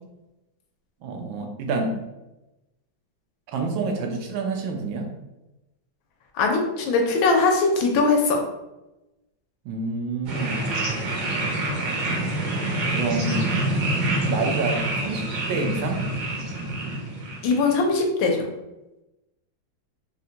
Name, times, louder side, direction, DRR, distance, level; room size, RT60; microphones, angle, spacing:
voice 1, 1.0-2.0 3.5-5.1 9.6-10.7 12.9-13.6 14.2-16.0, right 3 dB, 85° right, 3 dB, 1.3 m, -28 dB
voice 2, 6.3-8.4 17.4-18.5, left 3 dB, 80° left, 2 dB, 1.4 m, -21 dB
sound 1, 10.3-17.7, right 2 dB, 65° right, 1.2 m, -26 dB
3.9 x 2.1 x 2.7 m, 0.97 s
omnidirectional pair, 2.1 m